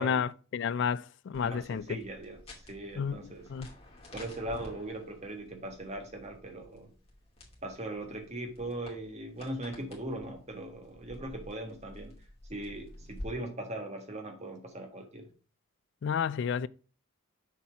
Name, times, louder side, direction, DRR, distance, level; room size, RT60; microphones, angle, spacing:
voice 1, 0.0-2.0 3.0-3.2 3.5-3.7 16.0-16.7, left 7 dB, 55° left, 0.3 m, -31 dB
sound 1, 1.3-13.3, left 1 dB, 25° left, 2.6 m, -51 dB
voice 2, 1.4-2.4 2.7-3.5 4.1-6.9 7.6-12.2 12.5-15.3, right 1 dB, 30° right, 1.5 m, -39 dB
7.2 x 4.3 x 5.8 m
head